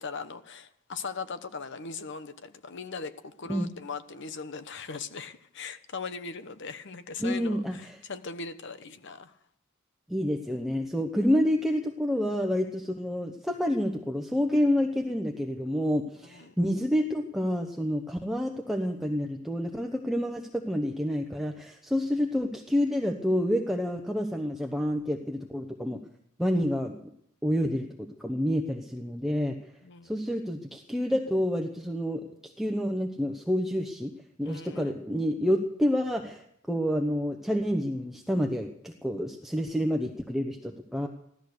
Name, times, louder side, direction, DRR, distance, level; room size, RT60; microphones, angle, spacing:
voice 1, 0.0-9.4 16.2-16.5 29.8-30.1 34.4-34.9, left 4 dB, 60° left, 11 dB, 1.1 m, -39 dB
voice 2, 7.2-8.0 10.1-26.0 26.4-27.0 27.4-29.6 30.0-34.1 34.4-41.1, equal, ahead, 2 dB, 0.9 m, -28 dB
16.0 x 13.0 x 6.7 m, 0.72 s
head